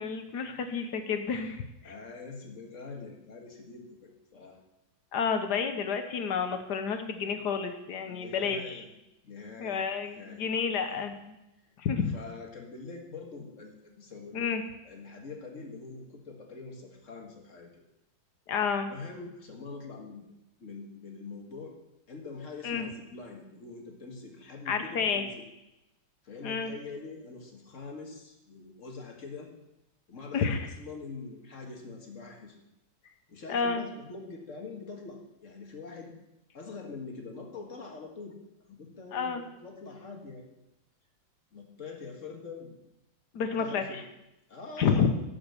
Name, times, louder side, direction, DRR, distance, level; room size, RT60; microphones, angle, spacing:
voice 1, 0.0-1.9 5.1-8.8 9.6-11.3 11.8-12.1 14.3-14.6 18.5-18.9 22.6-22.9 24.7-25.3 26.4-26.7 30.3-30.7 33.5-33.8 39.1-39.4 43.3-44.0 44.8-45.1, left 6 dB, 65° left, 8 dB, 1.4 m, -30 dB
voice 2, 1.8-4.6 8.1-8.9 9.2-10.4 10.9-11.0 11.6-11.7 12.1-17.7 18.7-20.3 20.6-21.8 22.1-25.5 26.2-29.5 30.1-32.6 33.3-36.1 36.5-38.4 38.7-40.5 41.5-42.8 43.3-44.0 44.5-45.1, left 4 dB, 40° left, 2 dB, 1.8 m, -44 dB
11.0 x 6.2 x 6.8 m, 0.92 s
omnidirectional pair, 2.1 m